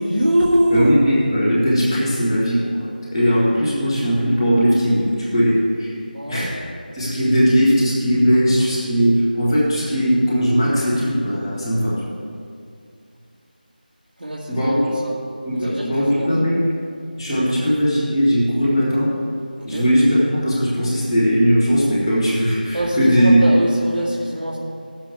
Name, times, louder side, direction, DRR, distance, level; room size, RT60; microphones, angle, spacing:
voice 1, 0.0-0.9 6.1-6.7 14.2-14.7 15.0-15.2 15.5-16.3 19.6-19.9 22.7-24.6, equal, 70° right, -6 dB, 2.1 m, -22 dB
voice 2, 0.7-5.9 6.3-6.6 6.9-12.1 14.5-14.9 15.4-16.8 17.2-19.2 19.6-23.4, equal, 5° left, -17 dB, 1.8 m, -18 dB
18.5 x 7.3 x 3.7 m, 2.3 s
figure-of-eight pair, 175°, 5 cm